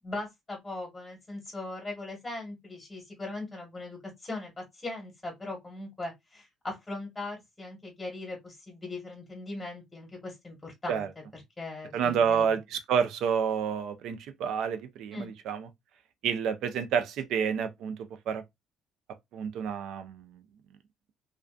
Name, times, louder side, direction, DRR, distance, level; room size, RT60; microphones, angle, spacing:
voice 1, 0.0-11.1 11.3-12.5 15.1-15.4, left 2 dB, 15° left, 1.2 m, -39 dB
voice 2, 11.9-15.7 16.2-18.0 18.3-18.4 19.3-20.4, right 7 dB, 70° right, 0.5 m, -29 dB
2.5 x 2.3 x 2.3 m
cardioid pair, 110°, 0 cm